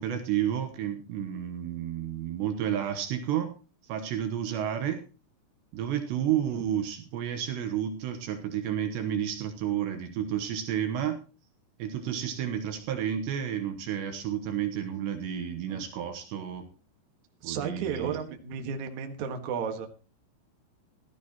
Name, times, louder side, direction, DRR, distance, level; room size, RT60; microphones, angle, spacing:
voice 1, 0.0-3.5 3.8-5.0 5.7-11.2 11.8-16.7 17.4-18.2, right 10 dB, 75° right, 7 dB, 2.9 m, -31 dB
voice 2, 17.4-19.9, right 7 dB, 60° right, 4 dB, 2.1 m, -33 dB
14.5 x 14.5 x 3.0 m, 0.34 s
omnidirectional pair, 5.7 m